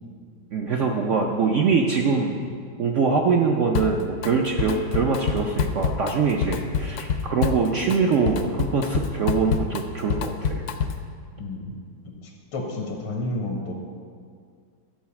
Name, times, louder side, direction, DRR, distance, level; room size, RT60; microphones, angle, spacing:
voice 1, 0.5-2.4 2.8-10.6, right 5 dB, 75° right, 1 dB, 0.6 m, -23 dB
Drum kit, 3.7-4.3 4.6-11.1, left 6 dB, 70° left, 0.9 m, -27 dB
voice 2, 11.4-11.7 12.5-13.7, left 2 dB, 90° left, 0 dB, 2.0 m, -30 dB
11.5 x 4.8 x 7.1 m, 2.1 s
omnidirectional pair, 2.1 m